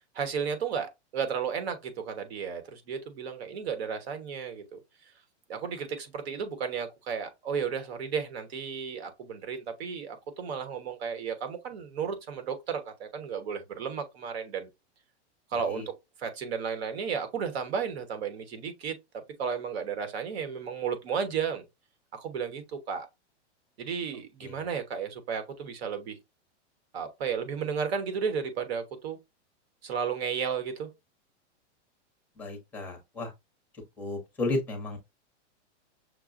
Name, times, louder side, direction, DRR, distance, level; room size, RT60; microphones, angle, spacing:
voice 1, 0.1-4.8 5.5-14.7 15.5-15.9 16.2-19.0 19.4-21.6 22.1-23.1 23.8-26.2 26.9-29.2 29.8-30.9, right 6 dB, 60° right, 1.1 m, -33 dB
voice 2, 15.5-15.9 24.4-24.7 32.4-33.3 33.7-35.0, left 2 dB, 5° left, 0.7 m, -34 dB
6.1 x 2.2 x 2.5 m
supercardioid pair, 160°, 35 cm